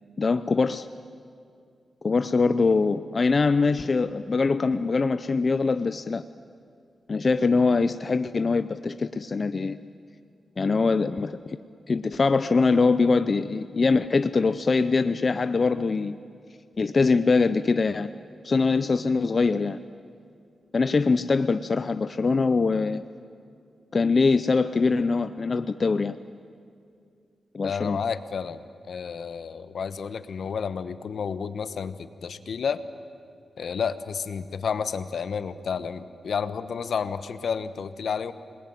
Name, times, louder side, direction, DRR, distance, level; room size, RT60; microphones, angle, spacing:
voice 1, 0.2-0.9 2.0-6.2 7.1-9.8 10.6-11.6 11.9-16.2 16.8-18.1 18.4-19.8 20.7-23.0 23.9-26.2 27.5-28.0, left 4 dB, 40° left, 12 dB, 0.6 m, -23 dB
voice 2, 27.6-28.6 28.9-32.8 33.6-38.3, left 6 dB, 70° left, 13 dB, 1.1 m, -31 dB
27.0 x 20.5 x 9.2 m, 2.3 s
wide cardioid pair, 110°, 0 cm